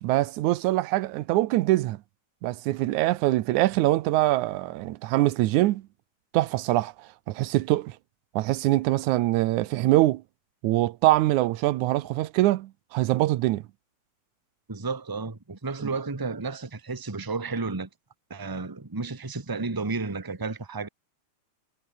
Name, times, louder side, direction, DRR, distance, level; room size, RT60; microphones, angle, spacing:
voice 1, 0.0-2.0 2.4-5.8 6.3-6.9 7.3-8.0 8.4-10.2 10.6-13.6 15.8-15.9, right 16 dB, 85° right, 2.2 m, -23 dB
voice 2, 14.7-17.9 18.3-20.9, right 3 dB, 15° right, 0.7 m, -32 dB
omnidirectional pair, 3.3 m